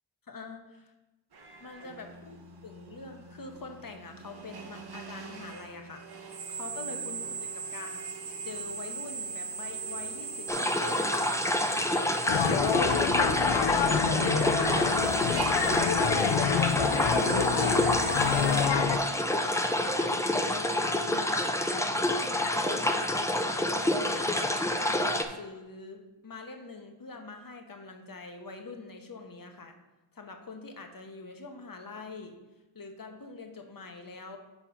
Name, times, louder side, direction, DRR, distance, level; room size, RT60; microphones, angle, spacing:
voice 1, 0.3-0.9 1.6-6.0 6.5-8.0 8.4-13.4 13.7-19.5 19.8-29.7 30.1-32.4 32.7-34.4, left 3 dB, 45° left, 4 dB, 0.9 m, -44 dB
Drill, 1.3-18.7, right 5 dB, 50° right, 0.9 m, -39 dB
sound 1, 10.5-25.3, left 1 dB, 5° left, 0.4 m, -28 dB
sound 2, 12.3-19.0, left 7 dB, 65° left, 0.6 m, -27 dB
5.7 x 4.4 x 5.7 m, 1.1 s
wide cardioid pair, 90°, 47 cm